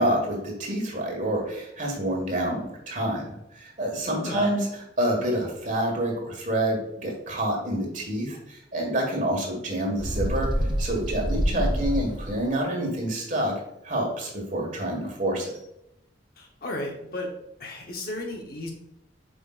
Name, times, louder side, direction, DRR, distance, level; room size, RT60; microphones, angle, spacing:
voice 1, 0.0-4.7 5.0-10.5 10.8-13.5 13.8-15.5, right 1 dB, 40° right, 1 dB, 1.7 m, -27 dB
Bird, 10.0-12.5, equal, 25° right, 0.6 m, -27 dB
voice 2, 16.4-17.3 17.6-18.7, left 1 dB, 50° left, 1 dB, 1.0 m, -34 dB
8.2 x 5.2 x 2.5 m, 0.83 s
head